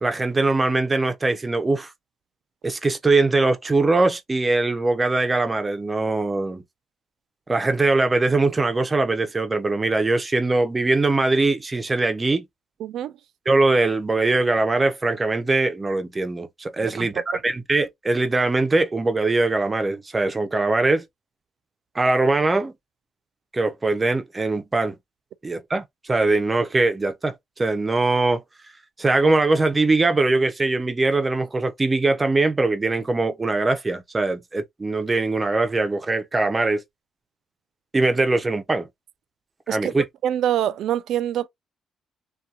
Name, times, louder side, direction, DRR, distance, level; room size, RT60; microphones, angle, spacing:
voice 1, 0.0-1.9 2.6-6.6 7.5-12.5 13.5-21.1 21.9-22.7 23.5-25.0 25.4-28.4 29.0-36.8 37.9-38.9 39.7-40.0, right 3 dB, 25° right, 0.6 m, -21 dB
voice 2, 12.8-13.1 16.8-17.2 39.7-39.9 40.2-41.5, right 11 dB, 75° right, 0.3 m, -25 dB
2.7 x 2.3 x 2.3 m
cardioid pair, 90°, 0 cm